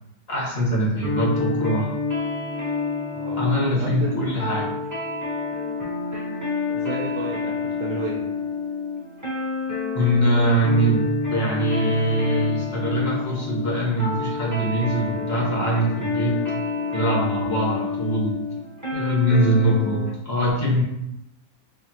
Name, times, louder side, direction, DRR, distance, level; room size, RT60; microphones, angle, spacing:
voice 1, 0.3-1.9 3.4-4.7 9.9-16.4 16.9-18.4 18.9-20.8, right 1 dB, 40° left, -5 dB, 1.2 m, -22 dB
sound 1, 1.0-20.2, left 4 dB, 15° right, 0.8 m, -28 dB
voice 2, 3.1-3.5 3.8-4.1 6.7-8.2, right 4 dB, 70° right, -1 dB, 1.1 m, -33 dB
4.0 x 3.2 x 2.8 m, 0.84 s
omnidirectional pair, 1.9 m